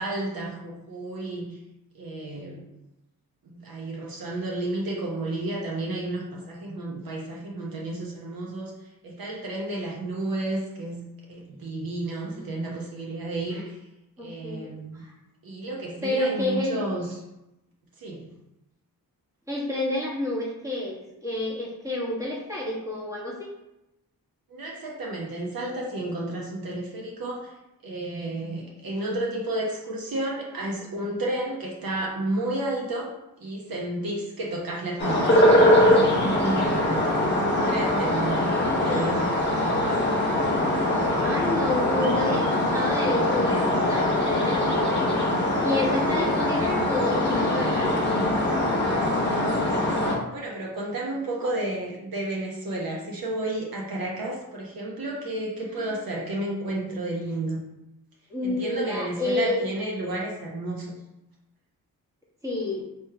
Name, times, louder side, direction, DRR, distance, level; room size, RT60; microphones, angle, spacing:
voice 1, 0.0-1.6 1.9-2.6 3.4-8.7 9.0-13.8 14.2-15.0 15.4-17.1 18.0-18.3 24.5-27.5 27.8-33.1 33.4-39.9 48.8-57.6 58.4-60.9, right 2 dB, 70° right, -2 dB, 0.9 m, -32 dB
voice 2, 14.2-15.1 16.0-16.8 19.5-23.5 38.4-39.2 41.2-45.1 45.6-48.1 51.4-51.5 55.7-55.9 58.3-59.7 62.4-62.8, left 2 dB, 10° right, -6 dB, 1.3 m, -29 dB
sound 1, 35.0-50.1, left 1 dB, 30° left, 1.4 m, -22 dB
3.1 x 3.1 x 4.7 m, 0.91 s
wide cardioid pair, 120°, 36 cm